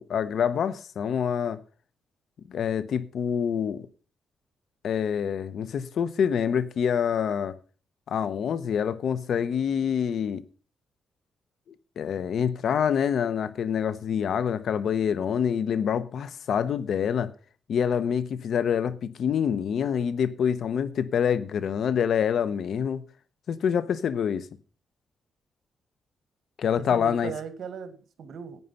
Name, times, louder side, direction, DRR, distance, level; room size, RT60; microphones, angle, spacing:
voice 1, 0.0-1.6 2.5-3.9 4.8-7.6 8.1-10.4 12.0-17.3 17.7-23.0 23.5-24.5 26.6-27.3, left 8 dB, 70° left, 0.9 m, -26 dB
voice 2, 26.8-28.6, right 7 dB, 70° right, 1.9 m, -38 dB
11.0 x 9.3 x 5.7 m
cardioid pair, 100°, 0 cm